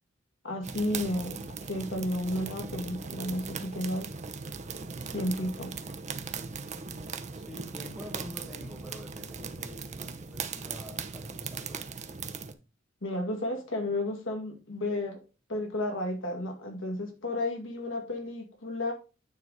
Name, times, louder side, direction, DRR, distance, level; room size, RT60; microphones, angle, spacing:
voice 1, 0.4-4.1 5.1-5.7 13.0-15.2 15.5-18.9, left 1 dB, 80° left, 2.0 m, -32 dB
sound 1, 0.6-12.5, right 5 dB, 35° right, 0.7 m, -39 dB
voice 2, 7.3-11.8, equal, ahead, 1.6 m, -47 dB
9.3 x 4.0 x 4.7 m
head